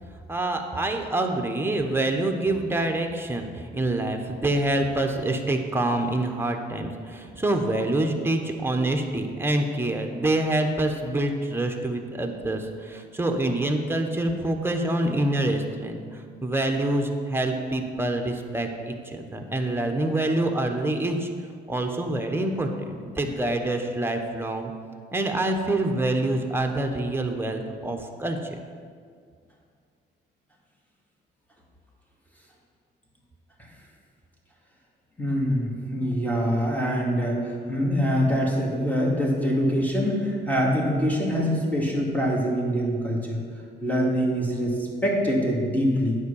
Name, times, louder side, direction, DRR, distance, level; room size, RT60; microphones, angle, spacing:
voice 1, 0.3-21.3 21.7-24.7 25.1-28.4, right 1 dB, 10° right, 4 dB, 1.0 m, -26 dB
voice 2, 35.2-37.4 37.7-43.4 43.8-44.7 45.0-46.2, equal, 10° left, -2 dB, 2.2 m, -24 dB
9.4 x 4.8 x 7.1 m, 2.1 s
cardioid pair, 90°, 20 cm